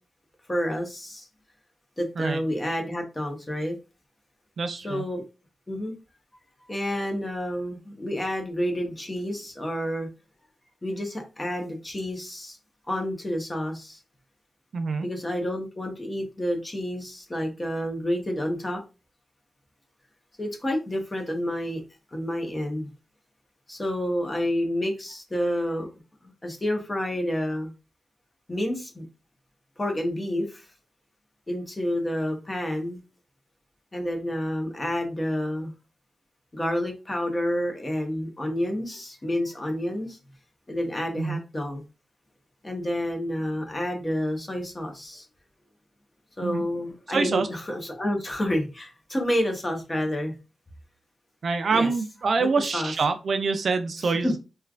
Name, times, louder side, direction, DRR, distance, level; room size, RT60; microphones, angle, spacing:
voice 1, 0.5-1.3 2.0-3.8 4.8-5.2 5.7-6.0 6.7-10.1 10.8-12.6 12.9-14.0 15.0-18.8 20.4-21.8 22.1-22.9 23.7-25.9 26.2-27.7 28.5-29.0 29.8-30.7 31.5-33.0 33.9-35.7 36.5-40.2 40.7-41.8 42.6-45.2 46.4-50.4 51.7-51.9 52.4-52.5 52.7-52.9 54.2-54.3, equal, 25° left, 3 dB, 0.9 m, -29 dB
voice 2, 4.6-5.0 14.7-15.1 41.2-41.4 46.4-46.6 47.1-47.5 51.4-54.4, right 4 dB, 60° right, 8 dB, 0.4 m, -25 dB
3.1 x 2.3 x 2.4 m, 0.29 s
cardioid pair, 70°, 0 cm